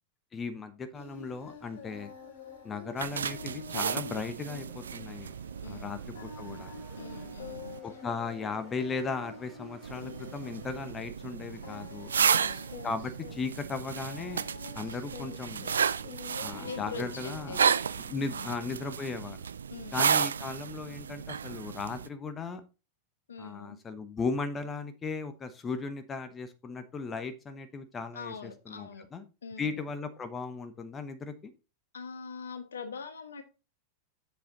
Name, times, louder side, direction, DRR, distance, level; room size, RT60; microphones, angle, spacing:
voice 1, 0.3-2.1 2.6-5.3 5.6-6.7 7.8-12.1 12.8-14.4 14.7-15.7 16.4-17.6 18.0-19.4 19.9-22.6 23.4-29.2 29.6-31.5, left 4 dB, 20° left, 9 dB, 0.9 m, -37 dB
Singing, 0.9-17.6, left 5 dB, 55° left, 2.6 m, -48 dB
sound 1, 3.0-7.8 9.8-22.1, right 7 dB, 70° right, 0.4 m, -33 dB
sound 2, 4.4-10.8, right 5 dB, 35° right, 2.1 m, -60 dB
voice 2, 5.6-6.0 7.0-8.0 12.2-12.7 16.6-17.7 18.2-18.5 19.7-20.1 23.3-23.8 28.1-29.1 29.4-29.8 31.9-33.4, left 5 dB, 70° left, 9 dB, 1.3 m, -43 dB
7.5 x 6.9 x 3.9 m, 0.30 s
figure-of-eight pair, 90°, 0 cm